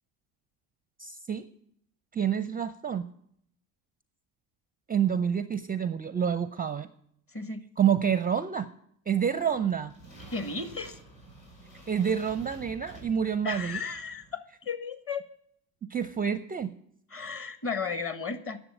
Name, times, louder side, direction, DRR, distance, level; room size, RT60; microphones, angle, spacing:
voice 1, 1.0-1.4 2.1-3.0 4.9-6.9 7.8-8.7 9.1-9.9 11.9-13.8 15.9-16.7, right 8 dB, 20° right, 14 dB, 0.5 m, -28 dB
voice 2, 7.3-7.7 10.3-11.0 13.4-15.3 17.1-18.6, left 4 dB, 25° left, 11 dB, 1.5 m, -34 dB
sound 1, 9.4-14.3, right 2 dB, 75° left, 4.8 m, -50 dB
11.0 x 7.0 x 8.6 m, 0.69 s
hypercardioid pair, 60°, 48 cm